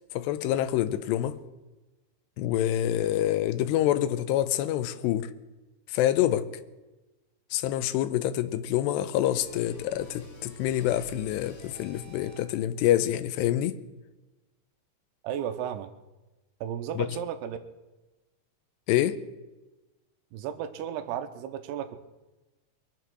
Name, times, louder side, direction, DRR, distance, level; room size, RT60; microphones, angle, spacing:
voice 1, 0.1-1.4 2.4-5.3 5.9-6.5 7.5-13.8 17.0-17.1 18.9-19.2, left 12 dB, 85° left, 2.9 m, -26 dB
sound 1, 9.3-12.7, left 1 dB, 60° left, 5.4 m, -49 dB
voice 2, 15.2-15.9 16.6-17.6 20.3-22.0, right 9 dB, 80° right, 2.8 m, -34 dB
23.0 x 7.8 x 6.2 m
omnidirectional pair, 4.8 m